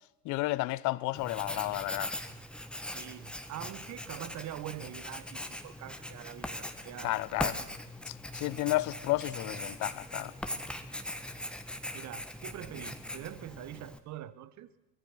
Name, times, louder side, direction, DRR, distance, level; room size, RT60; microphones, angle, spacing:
voice 1, 0.2-2.1 7.0-7.6 8.1-10.3, left 19 dB, 40° left, 0.8 m, -32 dB
Writing, 1.1-14.0, left 1 dB, ahead, 1.6 m, -40 dB
voice 2, 2.9-7.2 11.9-14.7, right 12 dB, 35° right, 1.3 m, -44 dB
24.0 x 19.0 x 6.1 m
hypercardioid pair, 90°, 48 cm